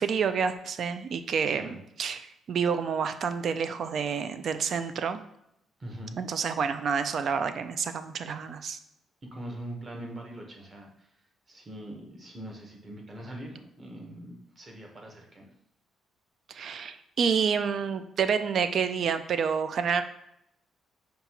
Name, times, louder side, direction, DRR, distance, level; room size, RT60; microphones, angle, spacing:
voice 1, 0.0-5.2 6.2-8.8 16.5-20.0, right 6 dB, 60° right, 10 dB, 0.3 m, -28 dB
voice 2, 5.8-6.2 9.3-11.1 11.5-15.4, right 1 dB, 30° right, 1 dB, 1.0 m, -42 dB
5.2 x 2.4 x 2.9 m, 0.76 s
cardioid pair, 90°, 0 cm